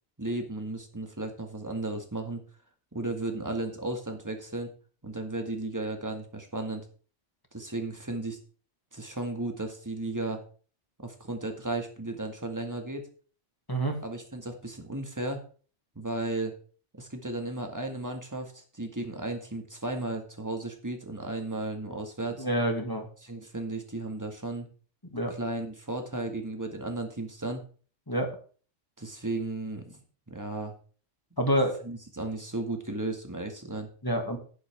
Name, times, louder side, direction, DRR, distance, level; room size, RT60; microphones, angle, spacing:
voice 1, 0.2-2.4 2.9-4.7 5.0-6.9 7.5-8.4 8.9-10.4 11.0-13.0 14.0-15.4 16.0-16.5 16.9-22.5 23.2-24.7 25.3-27.6 29.0-30.0 30.3-30.7 31.8-33.9, right 2 dB, 15° right, 4 dB, 1.9 m, -34 dB
voice 2, 22.4-23.1 25.1-25.3 28.1-28.3 31.4-31.8 34.0-34.4, right 1 dB, 15° left, 3 dB, 2.2 m, -27 dB
10.5 x 10.5 x 3.6 m, 0.40 s
omnidirectional pair, 1.3 m